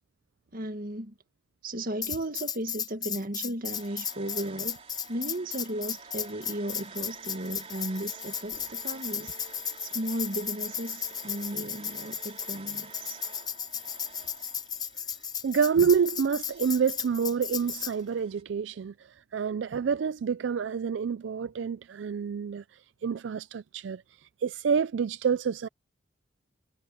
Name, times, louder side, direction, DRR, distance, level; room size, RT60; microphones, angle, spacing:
voice 1, 0.5-1.1 1.6-4.8 5.1-9.3 9.8-13.2, right 1 dB, 50° right, 1.8 m, -35 dB
Tambourine, 2.0-17.9, left 8 dB, 20° left, 0.7 m, -35 dB
sound 1, 3.7-18.4, right 4 dB, 35° right, 4.2 m, -49 dB
voice 2, 15.4-22.6 23.0-25.7, right 6 dB, 70° right, 0.4 m, -28 dB
head